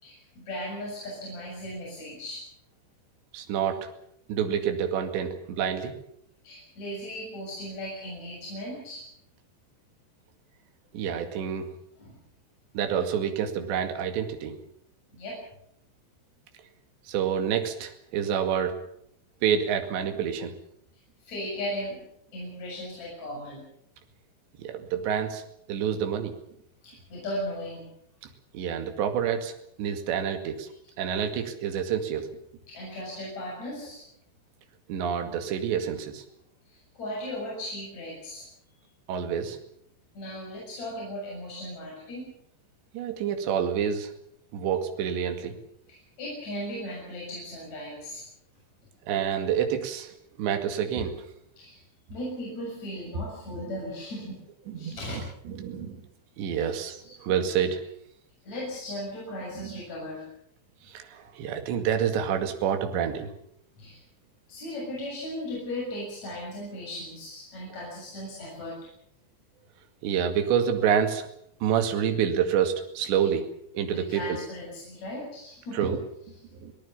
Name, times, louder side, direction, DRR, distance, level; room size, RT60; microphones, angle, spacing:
voice 1, 0.0-2.5 6.4-9.1 12.0-12.1 15.1-15.4 21.2-22.0 22.3-23.7 26.8-27.9 32.7-34.0 36.7-38.5 40.1-42.3 46.2-48.2 51.6-51.8 52.1-54.4 54.7-55.2 56.5-56.8 57.0-57.1 58.4-60.3 63.7-64.0 64.5-68.8 73.9-75.9, left 1 dB, 35° left, -3 dB, 8.2 m, -37 dB
voice 2, 3.3-3.9 4.3-5.9 10.9-11.7 12.7-14.6 17.1-18.8 19.4-20.5 24.6-25.4 25.7-26.3 28.5-29.5 29.8-30.7 31.0-32.3 34.9-36.2 39.1-39.6 42.9-44.1 44.5-45.6 49.1-51.3 54.7-55.0 55.5-56.0 56.4-57.8 59.6-59.8 60.9-63.3 70.0-71.3 71.6-73.5 73.7-74.4 75.7-76.0 76.5-76.7, right 8 dB, 70° right, 6 dB, 4.3 m, -28 dB
25.0 x 18.5 x 7.1 m, 0.70 s
omnidirectional pair, 5.4 m